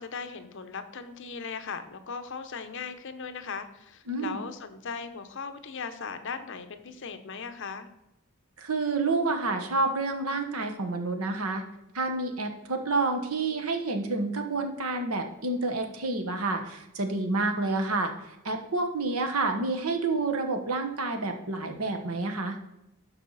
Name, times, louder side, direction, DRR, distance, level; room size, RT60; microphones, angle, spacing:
voice 1, 0.0-7.9, left 5 dB, 55° left, 9 dB, 0.8 m, -38 dB
voice 2, 4.1-4.4 8.6-11.6 11.9-18.1 18.4-22.6, right 3 dB, 80° right, 5 dB, 1.2 m, -29 dB
12.0 x 4.9 x 4.0 m, 0.90 s
head